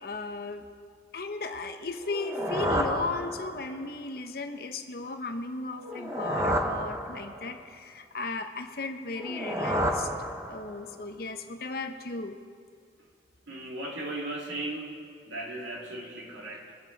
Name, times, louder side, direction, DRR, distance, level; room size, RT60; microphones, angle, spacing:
voice 1, 0.0-0.7 1.1-10.1 10.4-12.4, left 3 dB, 55° left, 7 dB, 0.9 m, -35 dB
sound 1, 2.0-3.8 5.8-7.6 9.1-10.9, equal, 15° right, 0.7 m, -31 dB
voice 2, 13.5-15.0 15.3-16.7, right 2 dB, 85° right, -3 dB, 2.6 m, -36 dB
22.5 x 8.0 x 4.0 m, 2.1 s
head